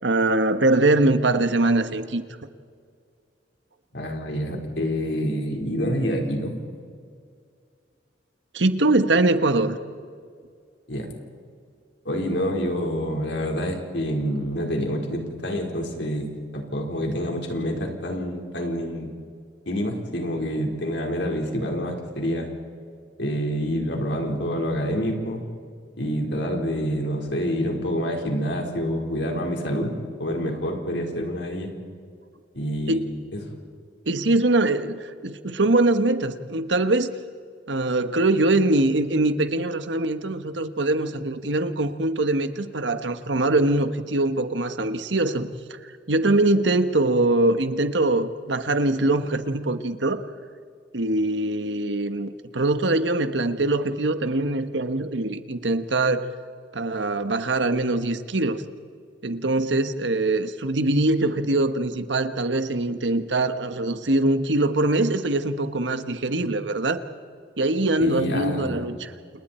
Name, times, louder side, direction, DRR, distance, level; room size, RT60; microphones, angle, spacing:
voice 1, 0.0-2.2 8.5-9.8 32.9-33.0 34.1-37.2 37.7-50.2 50.9-56.3 56.7-58.6 59.2-67.0 67.6-69.1, right 2 dB, 85° right, 10 dB, 1.3 m, -23 dB
voice 2, 3.9-6.5 10.9-11.1 12.0-19.1 19.7-22.5 23.2-25.4 26.0-29.9 30.2-31.7 32.5-33.0 33.3-33.4 68.0-68.8, equal, 80° left, 1 dB, 4.3 m, -27 dB
29.5 x 29.0 x 4.4 m, 2.1 s
head